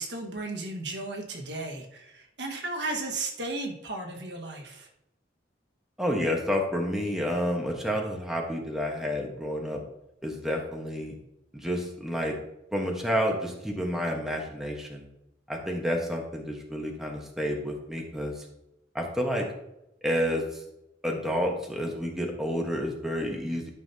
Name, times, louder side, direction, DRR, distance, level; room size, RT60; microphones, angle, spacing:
voice 1, 0.0-4.9, right 2 dB, 70° right, 2 dB, 1.5 m, -35 dB
voice 2, 6.0-9.8 10.2-11.1 11.5-12.3 12.7-15.1 15.5-18.5 18.9-19.4 20.0-20.6 21.0-23.7, equal, 5° right, 0 dB, 1.2 m, -30 dB
12.5 x 5.7 x 2.8 m, 0.87 s
head